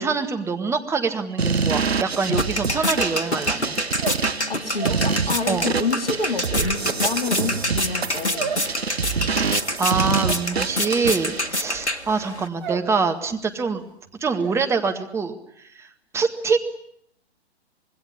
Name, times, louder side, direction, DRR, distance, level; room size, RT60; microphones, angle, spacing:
voice 1, 0.0-3.8 5.5-5.7 9.5-13.8 14.2-15.4 15.8-15.9 16.1-16.6, right 4 dB, 10° right, 5 dB, 1.9 m, -25 dB
sound 1, 1.4-11.5, right 5 dB, 70° right, 1.2 m, -26 dB
sound 2, 1.8-12.5, left 1 dB, 85° left, 1.7 m, -27 dB
sound 3, 3.9-5.9 6.2-13.0 13.3-13.8 14.1-14.6, right 6 dB, 45° right, 3.7 m, -35 dB
voice 2, 4.5-8.6, left 3 dB, 60° left, 10 dB, 2.5 m, -28 dB
25.5 x 20.5 x 9.9 m, 0.69 s
figure-of-eight pair, 120°, 33 cm